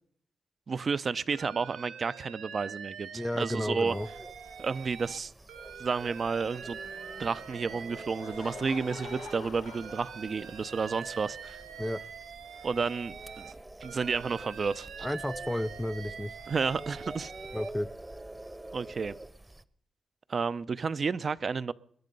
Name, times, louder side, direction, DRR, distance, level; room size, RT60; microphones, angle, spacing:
voice 1, 0.7-4.0 4.6-5.3 5.8-6.8 7.2-11.6 12.6-13.5 13.8-15.1 16.5-17.3 18.7-19.1 20.3-21.7, right 5 dB, 50° right, 16 dB, 0.6 m, -31 dB
Alarm, 1.3-5.2 5.5-9.4 9.6-13.5 13.8-17.7, right 7 dB, 80° right, 1.3 m, -45 dB
voice 2, 3.1-4.1 11.8-12.0 15.0-16.3 17.5-17.9, left 1 dB, 10° left, 19 dB, 0.7 m, -32 dB
sound 1, 3.8-19.6, right 1 dB, 20° right, 0.9 m, -46 dB
Laughter / Crowd, 7.9-10.7, left 8 dB, 85° left, 1.4 m, -47 dB
21.5 x 11.0 x 5.4 m, 0.63 s
cardioid pair, 60°, 0 cm